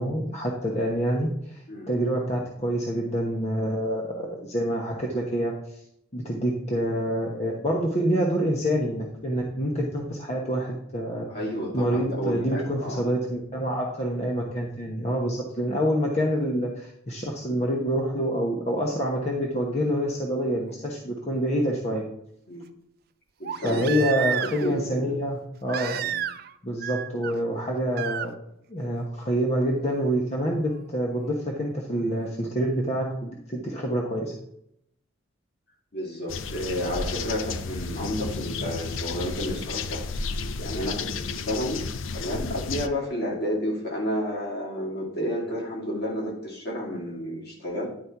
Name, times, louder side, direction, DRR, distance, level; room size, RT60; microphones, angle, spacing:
voice 1, 0.0-5.8 6.1-11.2 11.7-22.0 23.6-26.0 26.6-28.3 28.7-34.3, equal, 35° left, -1 dB, 1.0 m, -27 dB
voice 2, 11.3-13.0 22.5-22.6 23.4-23.8 24.4-25.1 26.0-26.2 35.9-40.0 40.6-41.8 42.1-47.9, equal, 55° left, -3 dB, 2.7 m, -31 dB
Crying sobbing, 20.7-20.8 23.4-24.8 25.7-26.5 26.8-27.3 27.9-28.3 29.9-30.0, right 9 dB, 50° right, 0.4 m, -31 dB
sound 1, 36.3-42.9, left 4 dB, 90° left, 0.5 m, -32 dB
10.5 x 4.2 x 4.6 m, 0.75 s
head